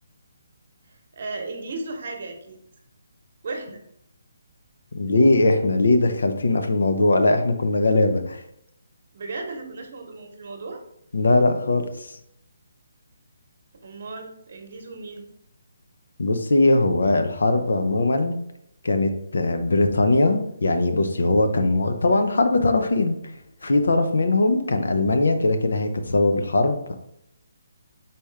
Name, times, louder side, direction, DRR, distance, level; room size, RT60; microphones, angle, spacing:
voice 1, 1.1-2.6 3.4-3.8 9.1-10.8 13.8-15.3, right 3 dB, 55° right, 3 dB, 1.0 m, -35 dB
voice 2, 4.9-8.4 11.1-12.1 16.2-18.3 18.8-23.2 23.6-26.9, left 2 dB, 80° left, 7 dB, 0.7 m, -20 dB
4.2 x 3.6 x 3.3 m, 0.74 s
hypercardioid pair, 165°, 0 cm